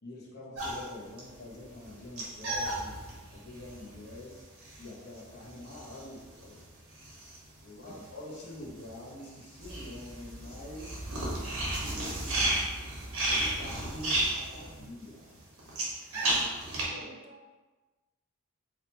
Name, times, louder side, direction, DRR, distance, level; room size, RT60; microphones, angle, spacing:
voice 1, 0.0-3.0 3.3-4.4 4.8-6.6 7.6-11.2 11.6-12.5 13.2-15.3 15.7-15.8 16.1-17.1, left 1 dB, 50° left, -5 dB, 0.9 m, -46 dB
sound 1, 0.5-8.1 8.3-16.8, right 1 dB, 80° right, 1.3 m, -34 dB
voice 2, 14.6-14.9 16.3-17.5, right 3 dB, 40° right, 4 dB, 0.5 m, -52 dB
4.7 x 3.5 x 2.9 m, 1.3 s
head